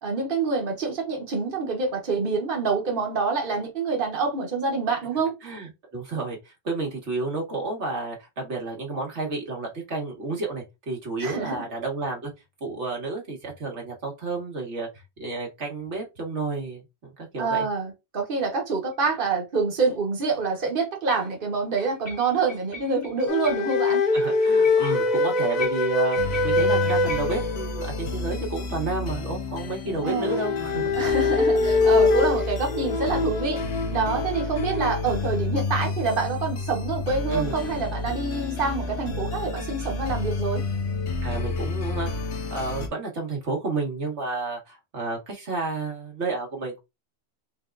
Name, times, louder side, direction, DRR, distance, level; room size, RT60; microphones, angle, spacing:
voice 1, 0.0-5.3 11.2-11.6 17.4-24.0 30.0-30.3 31.0-33.6 33.9-40.6, right 4 dB, 50° right, 1.4 m, -26 dB
voice 2, 5.4-12.3 12.6-14.9 15.2-17.7 24.1-26.2 26.4-31.3 37.3-37.6 41.2-42.1 42.5-46.8, right 3 dB, 85° right, 1.9 m, -31 dB
sound 1, 18.9-19.0 21.1-21.3 21.8-27.5, left 5 dB, 25° left, 1.2 m, -41 dB
sound 2, 23.3-28.1 30.0-35.0, left 3 dB, 45° left, 0.8 m, -23 dB
sound 3, 26.2-42.9, left 3 dB, 80° left, 1.2 m, -31 dB
4.5 x 3.5 x 2.5 m
omnidirectional pair, 1.1 m